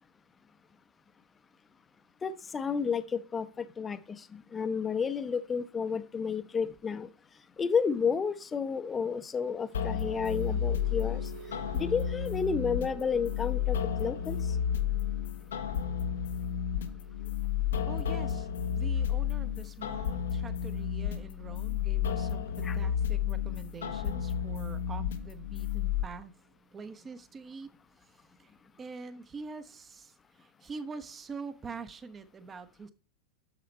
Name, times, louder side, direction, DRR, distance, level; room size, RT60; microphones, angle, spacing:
voice 1, 2.2-7.1 7.6-11.2 11.8-14.4 22.6-22.8, left 6 dB, 20° left, 13 dB, 0.8 m, -31 dB
sound 1, 9.5-25.8 26.2-26.5 26.8-27.1, right 7 dB, 45° right, 3.0 m, -52 dB
sound 2, 9.7-26.0, left 9 dB, 65° left, 0.8 m, -32 dB
voice 2, 17.9-26.3 26.7-27.7 28.0-28.1 28.4-32.9, right 4 dB, 20° right, 11 dB, 0.9 m, -45 dB
10.0 x 6.8 x 4.3 m, 0.38 s
figure-of-eight pair, 90°, 0 cm